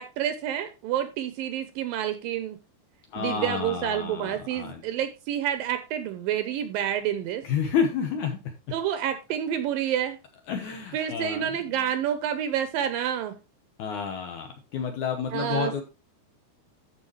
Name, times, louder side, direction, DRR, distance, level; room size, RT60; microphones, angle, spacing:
voice 1, 0.0-2.6 3.2-7.4 8.7-10.2 10.9-13.4 15.3-15.8, right 10 dB, 75° right, 10 dB, 2.3 m, -28 dB
voice 2, 3.1-4.8 7.4-8.4 10.5-11.5 13.8-15.8, left 7 dB, 70° left, 4 dB, 2.1 m, -30 dB
14.0 x 5.1 x 3.1 m, 0.29 s
omnidirectional pair, 4.5 m